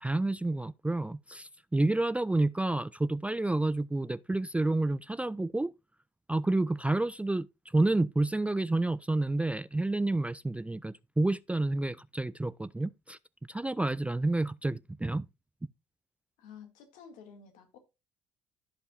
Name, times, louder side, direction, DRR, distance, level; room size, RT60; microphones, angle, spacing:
voice 1, 0.0-5.7 6.3-7.5 7.7-13.2 13.5-15.3, right 2 dB, 10° right, 0.3 m, -29 dB
voice 2, 16.4-17.8, left 7 dB, 70° left, 1.8 m, -51 dB
15.5 x 5.2 x 2.3 m
hypercardioid pair, 50°, 14 cm